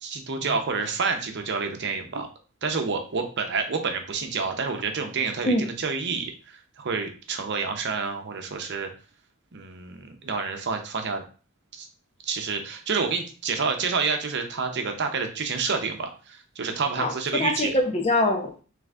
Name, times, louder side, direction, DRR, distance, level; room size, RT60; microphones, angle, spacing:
voice 1, 0.0-2.3 2.6-6.3 6.8-8.9 9.5-11.2 11.7-11.9 12.2-17.7, right 5 dB, 55° right, 0.7 m, -28 dB
voice 2, 17.0-18.6, left 1 dB, 30° left, 0.7 m, -24 dB
3.7 x 3.4 x 3.4 m
head